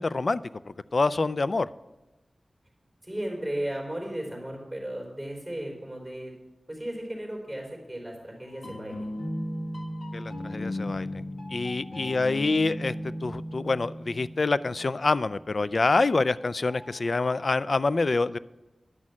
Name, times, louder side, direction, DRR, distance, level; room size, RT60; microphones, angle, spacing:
voice 1, 0.0-1.7 10.1-11.2 11.5-12.9 13.2-18.4, left 3 dB, 55° left, 17 dB, 0.3 m, -26 dB
voice 2, 3.0-6.4 6.7-9.1 12.2-12.3, right 1 dB, ahead, -1 dB, 4.0 m, -35 dB
sound 1, 8.5-15.2 16.7-17.4, equal, 70° left, 1.8 m, -36 dB
10.5 x 6.3 x 7.3 m, 1.1 s
wide cardioid pair, 95°, 0 cm